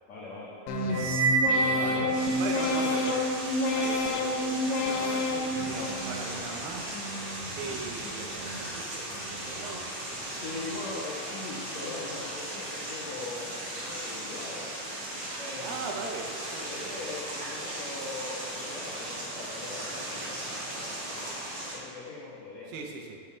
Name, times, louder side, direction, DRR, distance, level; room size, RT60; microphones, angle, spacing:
voice 1, 0.1-0.5 0.8-1.1 1.5-2.4 10.3-14.7 15.4-15.9 16.6-21.3 21.7-22.7, left 3 dB, 65° left, -7 dB, 1.8 m, -41 dB
sound 1, 0.7-6.5 6.9-7.6 8.0-8.7 9.1-9.7 10.2-10.8 11.3-11.8, left 2 dB, 85° left, 3.0 m, -31 dB
sound 2, 0.9-2.8, right 5 dB, 75° right, 2.5 m, -28 dB
voice 2, 1.8-3.3 3.7-7.0 7.5-9.9 15.6-17.0 22.7-23.2, right 4 dB, 90° right, 2 dB, 3.0 m, -39 dB
sound 3, 2.1-21.8, right 1 dB, 55° right, 3.8 m, -37 dB
8.1 x 5.8 x 7.0 m, 2.4 s
omnidirectional pair, 4.6 m